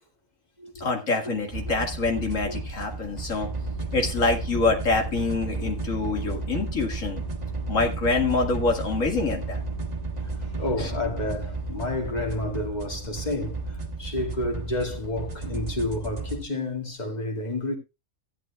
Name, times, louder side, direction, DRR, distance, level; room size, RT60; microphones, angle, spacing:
voice 1, 0.8-3.5 3.9-7.2 7.7-9.6 10.8-10.9, left 3 dB, 75° left, 2.4 m, -26 dB
sound 1, 1.5-16.4, right 3 dB, 30° right, 1.5 m, -33 dB
voice 2, 10.4-17.8, left 2 dB, 30° left, 2.2 m, -30 dB
15.5 x 11.0 x 2.3 m
omnidirectional pair, 1.4 m